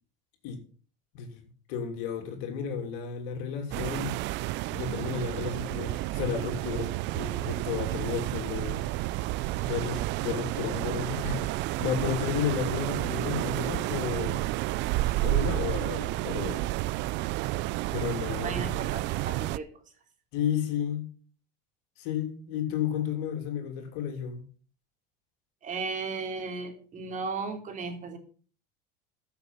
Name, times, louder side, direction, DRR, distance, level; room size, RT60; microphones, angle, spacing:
voice 1, 1.7-4.2 4.7-8.9 9.7-14.4 15.2-16.7 17.9-18.7 20.3-21.1 22.0-24.4, left 8 dB, 75° left, 3.1 m, -32 dB
sound 1, 3.7-19.6, right 18 dB, 60° right, 0.5 m, -31 dB
voice 2, 18.4-19.7 25.6-28.2, right 4 dB, 40° right, 3.0 m, -35 dB
14.5 x 6.9 x 5.5 m
supercardioid pair, 100°, 21 cm